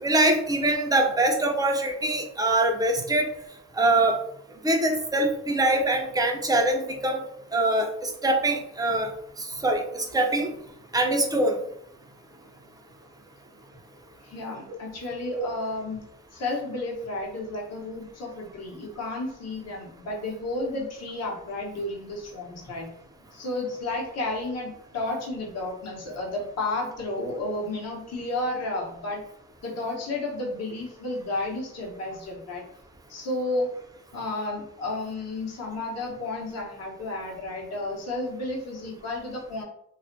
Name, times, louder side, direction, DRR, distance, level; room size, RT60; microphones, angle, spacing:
voice 1, 0.0-3.3 3.8-4.2 4.6-7.2 7.5-9.1 9.6-10.5 10.9-11.5, right 2 dB, 15° right, 2 dB, 0.4 m, -23 dB
voice 2, 14.2-16.0 16.3-22.9 23.3-29.2 29.6-32.6 33.1-33.7 34.1-39.6, left 2 dB, 55° left, -1 dB, 0.9 m, -32 dB
2.3 x 2.1 x 2.5 m, 0.72 s
cardioid pair, 90°, 30 cm